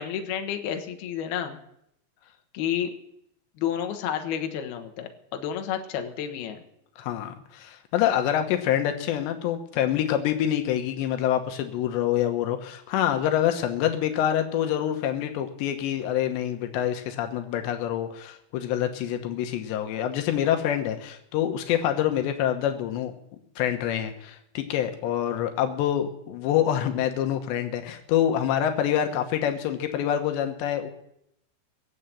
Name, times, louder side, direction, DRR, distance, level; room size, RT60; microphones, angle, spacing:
voice 1, 0.0-1.6 2.5-2.9 3.6-6.6, left 9 dB, 70° left, 4 dB, 3.1 m, -30 dB
voice 2, 7.0-23.1 23.6-30.9, left 10 dB, 85° left, 5 dB, 3.4 m, -26 dB
21.5 x 7.8 x 8.5 m, 0.77 s
omnidirectional pair, 5.0 m